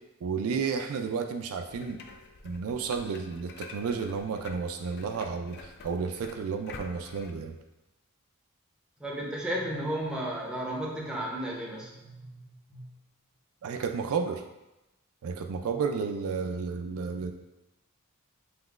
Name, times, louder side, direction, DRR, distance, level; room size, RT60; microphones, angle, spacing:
voice 1, 0.2-2.0 2.4-7.6 13.6-14.4 15.2-17.3, right 5 dB, 70° right, 5 dB, 0.4 m, -32 dB
sound 1, 1.7-7.3, left 4 dB, 50° left, 0.4 m, -48 dB
voice 2, 9.0-12.4 12.7-12.8, right 1 dB, 5° right, -3 dB, 0.7 m, -34 dB
5.6 x 3.0 x 2.4 m, 0.96 s
head